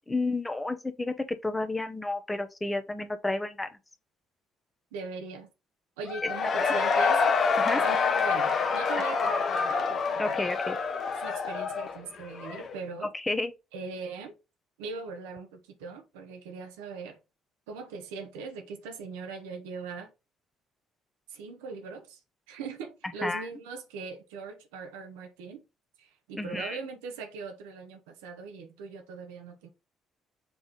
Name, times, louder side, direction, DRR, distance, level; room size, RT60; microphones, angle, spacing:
voice 1, 0.1-3.7 6.2-6.3 6.6-6.7 7.6-7.8 9.0-9.1 10.2-10.8 13.1-13.5 23.2-23.5 26.3-26.8, left 2 dB, 15° left, 1.1 m, -31 dB
voice 2, 4.9-5.5 6.0-7.3 7.8-10.3 11.2-13.1 13.7-14.3 14.8-17.2 17.7-20.1 21.3-22.2 22.5-25.6 26.0-29.7, right 4 dB, 70° right, 1.2 m, -40 dB
Cheering / Crowd, 6.1-12.8, left 5 dB, 45° left, 1.0 m, -27 dB
7.2 x 3.7 x 3.7 m
figure-of-eight pair, 45°, 0 cm